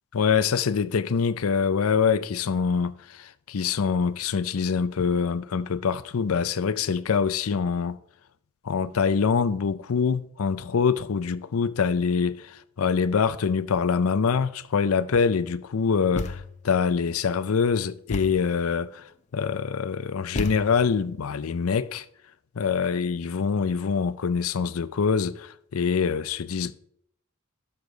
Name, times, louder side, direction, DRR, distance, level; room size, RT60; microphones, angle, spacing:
voice 1, 0.1-8.0 8.6-19.0 19.3-22.1 22.6-26.7, left 6 dB, 85° left, 0.5 m, -25 dB
Thump thud, 16.2-16.7 18.1-18.6 20.4-21.0, left 2 dB, 35° left, 0.6 m, -33 dB
12.0 x 6.5 x 3.9 m
head